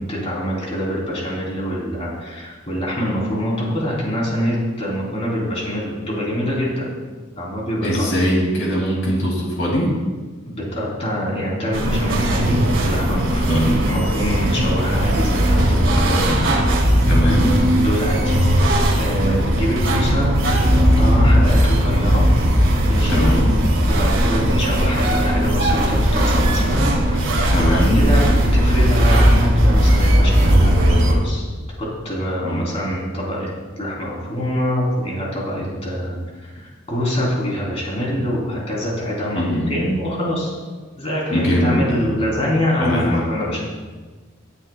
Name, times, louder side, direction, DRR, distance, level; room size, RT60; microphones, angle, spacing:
voice 1, 0.0-6.9 7.4-8.1 10.4-16.4 17.8-18.7 19.0-22.2 22.9-23.3 23.9-31.5 31.8-33.5 33.8-36.2 36.4-40.6 41.0-43.6, equal, 30° left, -4 dB, 3.7 m, -25 dB
voice 2, 7.8-9.9 13.5-13.7 17.1-17.6 23.1-23.5 27.5-28.0 32.4-32.6 39.3-39.8 41.3-42.1 42.8-43.2, equal, 65° left, -3 dB, 2.7 m, -21 dB
sound 1, 11.7-31.1, equal, 65° right, 2.0 m, -17 dB
19.0 x 9.8 x 2.4 m, 1.3 s
head